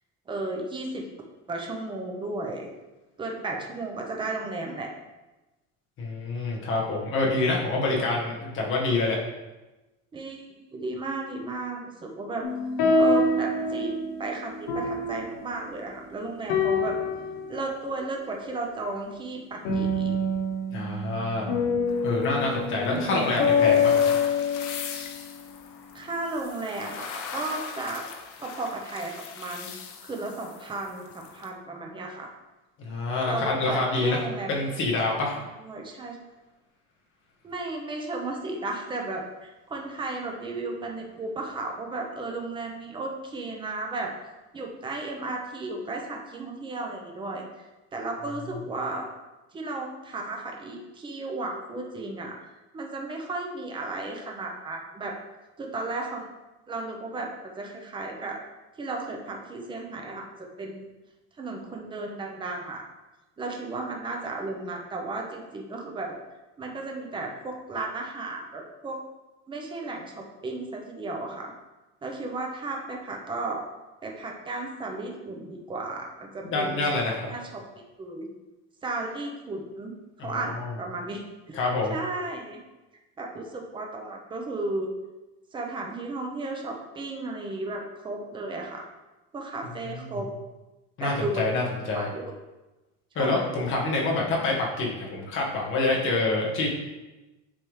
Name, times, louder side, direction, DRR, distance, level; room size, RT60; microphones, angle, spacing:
voice 1, 0.3-1.0 1.5-2.7 3.2-4.9 10.1-12.4 13.0-17.0 17.5-20.1 22.9-23.3 25.9-28.0 28.4-29.7 30.0-32.3 33.2-34.8 35.4-36.2 37.4-44.1 44.5-47.7 47.9-49.1 49.5-52.3 52.7-55.1 55.6-56.3 56.7-58.4 58.8-60.3 60.6-60.9 61.4-62.8 63.4-66.1 66.6-69.0 69.5-71.5 72.0-73.6 74.0-76.9 77.3-77.4 78.0-78.3 78.8-79.9 80.2-81.6 81.9-82.6 83.2-84.9 85.5-88.9 89.3-90.3 91.0-92.3 93.1-93.4, right 2 dB, 15° right, 1 dB, 0.7 m, -34 dB
voice 2, 6.0-9.2 20.7-21.5 22.0-24.0 32.8-34.2 34.5-35.4 76.4-77.3 80.2-80.7 81.5-81.9 89.9-90.2 91.0-92.1 93.1-96.7, left 3 dB, 35° left, -2 dB, 1.4 m, -27 dB
sound 1, 12.4-16.1 16.5-17.9 19.6-25.5, left 3 dB, 85° left, 1.5 m, -26 dB
sound 2, 21.9-31.5, left 6 dB, 55° left, 0.7 m, -41 dB
9.8 x 3.4 x 3.2 m, 1.1 s
cardioid pair, 170°, 35 cm